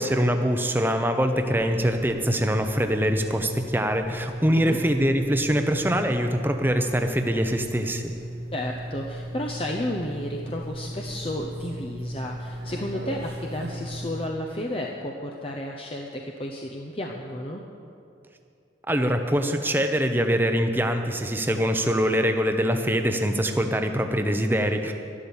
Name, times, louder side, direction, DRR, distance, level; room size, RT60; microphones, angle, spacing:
voice 1, 0.0-8.1 18.9-24.9, equal, 10° right, 6 dB, 0.8 m, -23 dB
sound 1, 1.2-14.3, right 1 dB, 60° right, 1.0 m, -36 dB
voice 2, 8.5-17.6, left 1 dB, 30° left, 1 dB, 0.7 m, -32 dB
12.0 x 12.0 x 7.2 m, 2.6 s
head